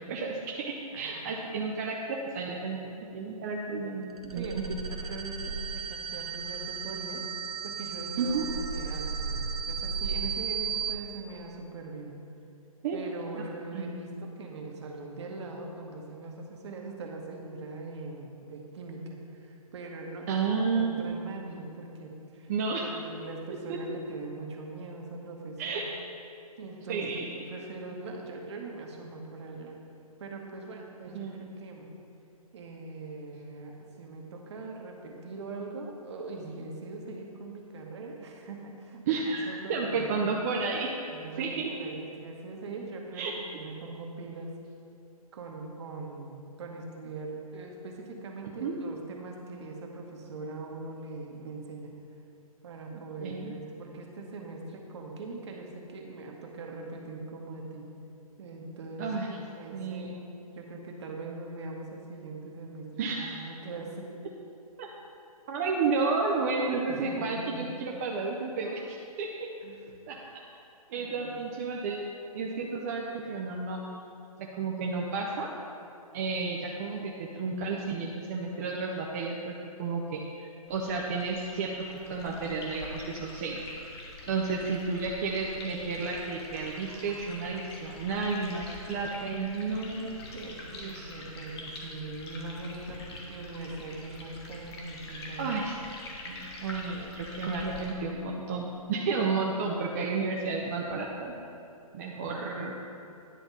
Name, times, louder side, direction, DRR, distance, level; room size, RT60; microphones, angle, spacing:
voice 1, 0.1-4.6 8.2-8.5 12.8-13.0 13.3-13.4 13.7-14.0 20.3-21.3 22.5-22.8 23.5-24.0 25.6-25.8 26.9-27.5 31.1-31.5 39.1-40.9 41.4-41.9 43.1-43.3 48.4-48.8 52.9-53.5 59.0-59.3 59.7-60.1 63.0-63.5 64.8-64.9 65.5-69.3 70.1-70.2 70.9-73.8 74.4-75.5 76.1-79.5 79.8-81.7 82.1-83.6 84.3-90.3 90.8-91.1 95.4-95.7 96.2-101.3 101.9-103.0, right 4 dB, 25° right, -1 dB, 0.4 m, -32 dB
voice 2, 0.9-1.6 4.3-7.2 7.6-12.2 12.9-22.5 22.8-25.8 26.6-29.8 30.2-31.9 32.5-40.2 41.1-44.5 45.3-51.9 52.6-57.9 58.4-60.2 60.5-64.1 66.9-67.7 69.6-69.9 70.9-71.4 90.3-95.5, right 3 dB, 50° right, 1 dB, 1.1 m, -41 dB
sound 1, 4.1-10.9, right 5 dB, 85° right, 0.9 m, -34 dB
sound 2, 80.7-97.9, left 2 dB, 45° left, 1.3 m, -44 dB
10.0 x 3.4 x 5.4 m, 2.6 s
figure-of-eight pair, 140°, 19 cm